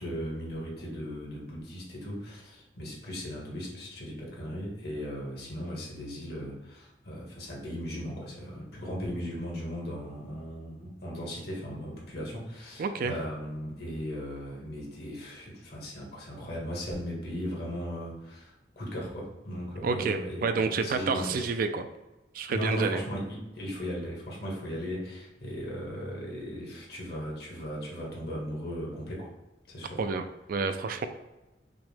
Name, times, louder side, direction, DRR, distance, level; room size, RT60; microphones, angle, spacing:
voice 1, 0.0-21.5 22.5-29.3 29.7-30.0, equal, 60° left, -3 dB, 1.4 m, -37 dB
voice 2, 12.8-13.1 19.8-21.9 22.3-23.0 30.0-31.1, right 4 dB, 55° right, 9 dB, 0.3 m, -29 dB
5.9 x 2.2 x 3.3 m, 1.0 s
head